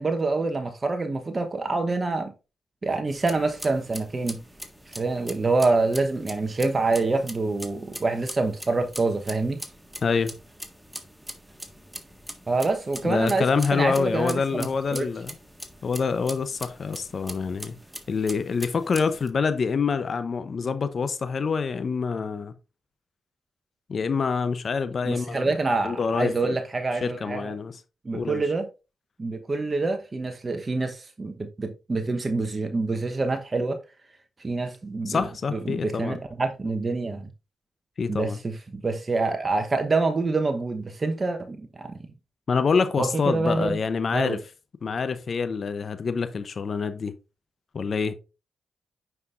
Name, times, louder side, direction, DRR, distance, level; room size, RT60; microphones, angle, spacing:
voice 1, 0.0-2.3 2.8-4.4 4.9-9.6 12.5-14.7 14.9-15.1 25.1-27.5 28.0-28.7 29.2-33.8 34.4-37.3 38.1-42.0 43.0-43.8 44.1-44.4, right 3 dB, 40° right, 1.0 m, -26 dB
sound 1, 3.1-19.3, equal, 5° right, 1.6 m, -42 dB
voice 2, 10.0-10.3 13.0-15.3 15.8-17.8 18.1-22.5 23.9-25.5 25.8-26.6 27.0-27.8 28.1-28.4 35.1-36.2 38.0-38.4 42.5-44.4 44.8-47.1 47.7-48.2, left 5 dB, 55° left, 0.7 m, -26 dB
9.3 x 5.7 x 2.5 m
hypercardioid pair, 40°, 0 cm